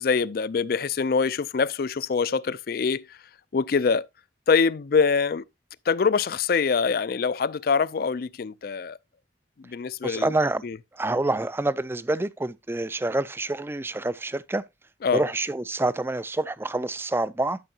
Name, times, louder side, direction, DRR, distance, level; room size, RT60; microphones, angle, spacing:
voice 1, 0.0-3.0 3.5-4.1 4.5-5.4 5.9-9.0 9.6-10.3 10.6-10.8 15.0-15.2, left 5 dB, 55° left, 0.4 m, -24 dB
voice 2, 10.0-10.6 11.0-14.6 15.1-17.6, right 2 dB, 15° right, 0.4 m, -27 dB
12.5 x 6.2 x 2.8 m
head